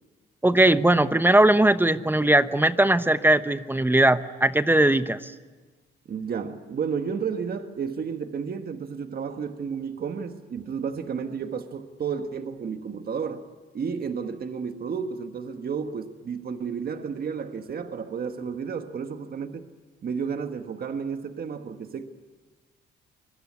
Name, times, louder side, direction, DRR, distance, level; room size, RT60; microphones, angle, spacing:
voice 1, 0.4-5.3, right 1 dB, 10° right, 1.0 m, -19 dB
voice 2, 6.1-13.4 13.7-19.7 20.0-22.0, right 6 dB, 50° right, 1.6 m, -32 dB
25.0 x 21.0 x 9.7 m
cardioid pair, 90°, 20 cm